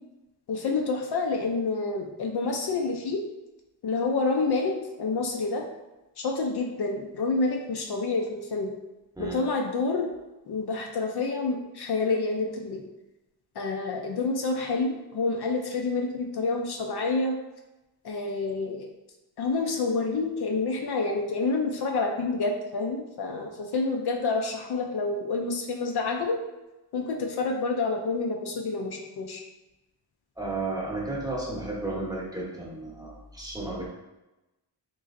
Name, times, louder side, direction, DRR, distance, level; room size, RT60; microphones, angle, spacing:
voice 1, 0.5-3.2 3.8-5.6 6.2-8.7 9.2-10.1 10.5-12.8 13.6-17.3 18.0-18.9 19.4-26.4 26.9-29.4, left 3 dB, 60° left, 2 dB, 0.5 m, -28 dB
voice 2, 30.4-33.9, right 2 dB, 10° right, -5 dB, 0.9 m, -33 dB
3.8 x 3.0 x 2.5 m, 1.0 s
wide cardioid pair, 115°, 43 cm